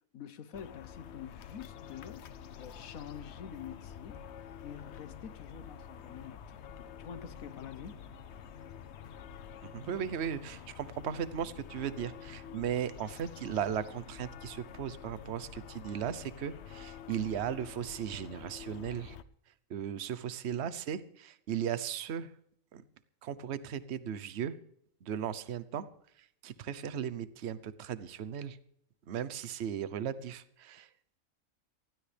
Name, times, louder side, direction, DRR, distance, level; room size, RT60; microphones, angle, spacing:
voice 1, 0.1-2.3 2.6-4.2 4.6-8.0, left 8 dB, 70° left, 14 dB, 1.3 m, -47 dB
sound 1, 0.5-19.2, left 8 dB, 55° left, 0.9 m, -48 dB
voice 2, 9.6-19.2 19.7-22.3 22.7-22.8 23.2-24.6 25.0-25.9 26.2-28.6 29.1-30.9, right 9 dB, 55° right, 15 dB, 1.0 m, -37 dB
19.5 x 15.5 x 3.4 m, 0.69 s
omnidirectional pair, 1.5 m